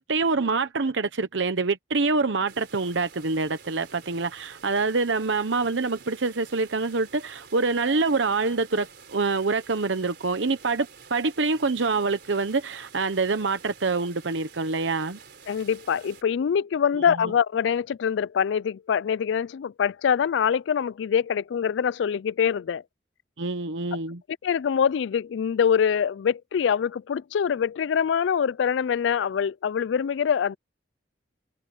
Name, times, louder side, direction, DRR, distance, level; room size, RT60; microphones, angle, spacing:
voice 1, 0.0-15.2 17.0-17.1 23.4-24.2, right 3 dB, 80° right, 0.9 m, -26 dB
sound 1, 2.5-16.2, right 6 dB, 60° right, 4.0 m, -49 dB
voice 2, 15.5-22.8 24.4-30.6, left 7 dB, 75° left, 0.3 m, -24 dB
head